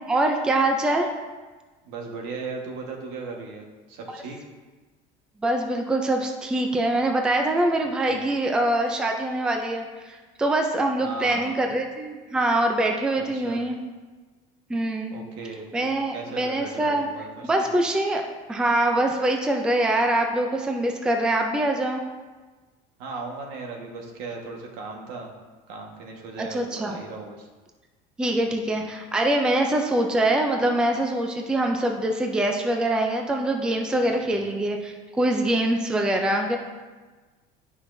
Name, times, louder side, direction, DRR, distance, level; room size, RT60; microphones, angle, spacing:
voice 1, 0.1-1.1 5.4-13.8 14.7-15.2 15.7-17.1 17.4-18.2 18.5-22.0 26.4-27.0 28.2-36.6, right 1 dB, 5° right, 3 dB, 0.4 m, -24 dB
voice 2, 1.8-4.4 8.1-8.2 11.0-11.5 13.2-13.6 15.1-17.5 23.0-25.3 25.7-27.5 28.4-28.8 34.2-34.5, right 4 dB, 75° right, 1 dB, 1.4 m, -37 dB
11.5 x 5.6 x 2.7 m, 1.3 s
cardioid pair, 170°, 17 cm